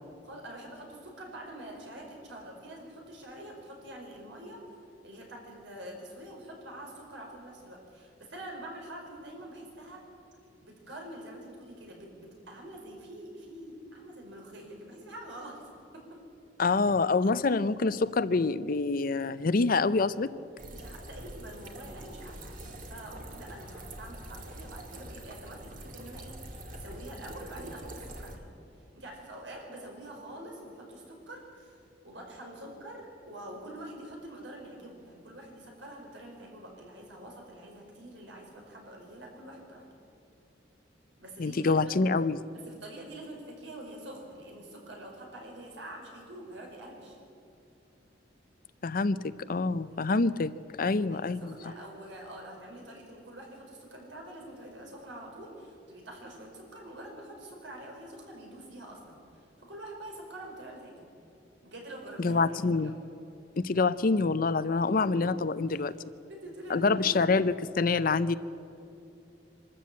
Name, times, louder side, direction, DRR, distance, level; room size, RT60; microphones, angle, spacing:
voice 1, 0.2-4.6 5.0-10.0 10.6-16.2 20.7-28.5 28.9-39.8 41.2-41.9 42.5-47.2 49.9-50.4 50.9-61.1 61.6-62.9 65.0-65.2 65.7-65.8 66.3-67.3, right 1 dB, 85° right, 0 dB, 5.0 m, -46 dB
voice 2, 16.6-20.3 41.4-42.4 48.8-50.5 50.8-51.5 62.2-62.9 63.6-65.9 66.7-68.4, left 3 dB, 50° left, 15 dB, 0.6 m, -26 dB
sound 1, 20.6-28.4, right 1 dB, 45° right, 2.0 m, -44 dB
24.5 x 13.0 x 8.5 m, 2.6 s
head